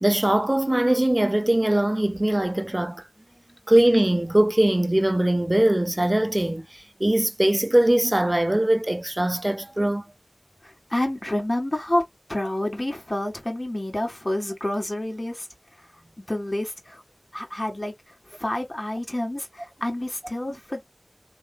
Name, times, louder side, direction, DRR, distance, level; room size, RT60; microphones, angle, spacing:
voice 1, 0.0-3.0 3.7-10.1, right 1 dB, 30° right, 0.4 m, -21 dB
voice 2, 10.6-12.0 12.3-15.5 15.8-15.9 16.2-17.0 17.3-20.8, left 1 dB, 45° left, 1.9 m, -29 dB
4.0 x 3.2 x 2.2 m
wide cardioid pair, 40°, 0 cm